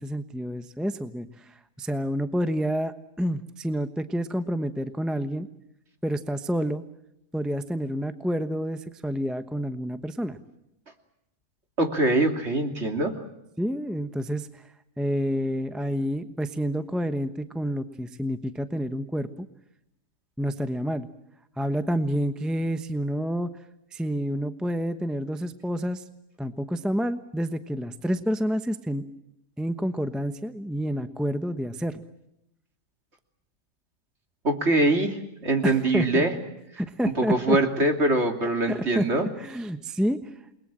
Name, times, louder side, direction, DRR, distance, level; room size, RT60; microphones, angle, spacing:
voice 1, 0.0-5.5 6.0-6.8 7.3-10.4 13.6-14.6 15.0-19.5 20.4-21.1 21.6-23.5 23.9-26.0 26.4-29.0 29.6-32.0 35.6-36.2 36.8-37.6 38.7-39.1 39.4-40.2, equal, ahead, 9 dB, 0.8 m, -29 dB
voice 2, 11.8-13.2 34.4-36.3 37.2-39.3, right 2 dB, 40° right, 5 dB, 3.1 m, -23 dB
29.0 x 21.5 x 7.5 m, 0.83 s
omnidirectional pair, 1.7 m